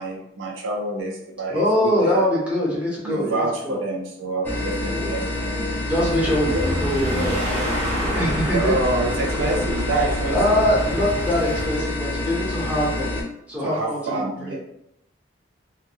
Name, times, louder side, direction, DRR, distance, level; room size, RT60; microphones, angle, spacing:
voice 1, 0.0-2.3 3.0-5.7 6.2-6.7 8.5-10.6 13.6-14.6, right 2 dB, 90° right, -1 dB, 0.5 m, -27 dB
voice 2, 1.5-3.8 4.7-5.1 5.9-7.8 8.1-8.7 10.3-13.1 13.5-14.0 14.4-14.6, equal, 5° right, -8 dB, 0.9 m, -23 dB
sound 1, 4.4-13.2, left 2 dB, 10° left, 0.4 m, -27 dB
sound 2, 5.9-11.6, equal, 35° right, 0.9 m, -29 dB
2.3 x 2.1 x 3.0 m, 0.79 s
head